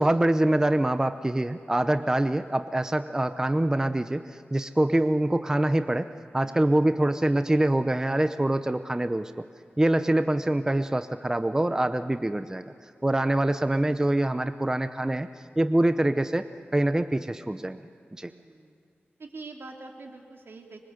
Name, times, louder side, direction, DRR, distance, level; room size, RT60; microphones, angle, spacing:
voice 1, 0.0-4.2 4.5-9.4 9.8-12.7 13.0-15.3 15.6-16.5 16.7-17.8 18.2-18.3, right 1 dB, 15° right, 9 dB, 0.7 m, -24 dB
voice 2, 6.4-6.9 13.2-13.4 18.2-18.7 19.2-20.8, right 3 dB, 75° right, 2 dB, 3.0 m, -45 dB
25.5 x 23.0 x 8.0 m, 2.4 s
wide cardioid pair, 105°, 4 cm